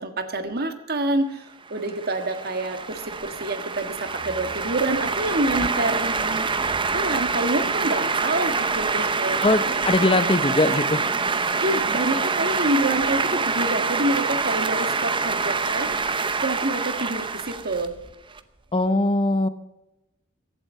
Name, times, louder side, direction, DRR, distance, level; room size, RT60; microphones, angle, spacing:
voice 1, 0.0-6.7 6.9-9.8 10.9-11.0 11.6-17.9, right 1 dB, 45° right, 8 dB, 1.6 m, -27 dB
sound 1, 1.7-18.4, right 4 dB, 25° right, 0.7 m, -26 dB
voice 2, 9.4-11.0 18.7-19.5, left 2 dB, 25° left, 12 dB, 0.8 m, -21 dB
16.0 x 12.0 x 5.5 m, 0.93 s
head